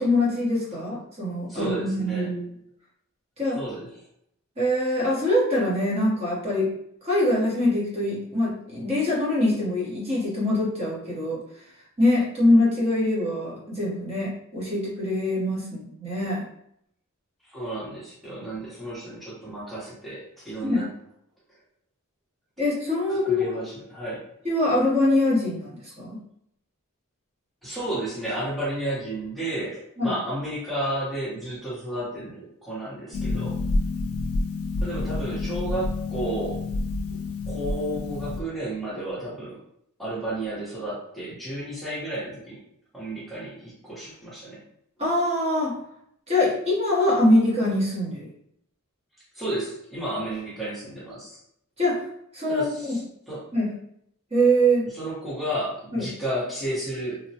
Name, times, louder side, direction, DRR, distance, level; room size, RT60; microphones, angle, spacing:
voice 1, 0.0-2.5 3.4-3.6 4.6-6.7 7.0-11.4 12.0-16.4 20.6-20.8 22.6-23.5 24.4-26.2 30.0-30.1 45.0-45.8 46.3-48.3 51.8-52.0 52.3-53.0 53.5-53.7 54.3-54.9 55.9-56.0, left 1 dB, 30° right, -6 dB, 0.9 m, -23 dB
voice 2, 1.5-2.3 3.5-3.9 17.5-20.9 23.1-24.3 27.6-33.6 34.8-36.6 37.5-39.6 40.0-42.6 42.9-44.6 49.3-51.4 52.5-53.0 53.3-53.5 54.9-57.2, right 1 dB, ahead, -9 dB, 0.8 m, -32 dB
Harp, 33.1-38.4, left 3 dB, 70° left, 0.4 m, -28 dB
2.9 x 2.1 x 2.8 m, 0.74 s
head